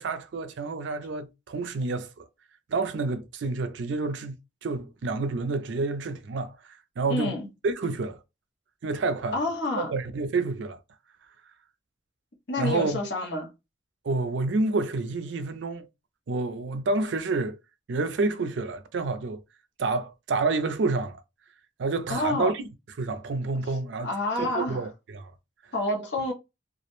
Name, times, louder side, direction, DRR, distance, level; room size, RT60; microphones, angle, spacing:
voice 1, 0.0-2.3 2.7-4.4 4.6-7.3 7.6-8.2 8.8-9.5 9.8-10.8 12.6-13.0 14.0-15.9 16.3-17.6 17.9-19.4 19.8-21.2 21.8-22.6 23.0-24.1 24.4-25.3, right 3 dB, 70° right, 0.4 m, -29 dB
voice 2, 7.1-7.5 9.3-9.9 12.5-13.5 22.1-22.5 24.0-24.9 25.7-26.3, left 2 dB, 60° left, 0.8 m, -28 dB
2.3 x 2.0 x 2.9 m
head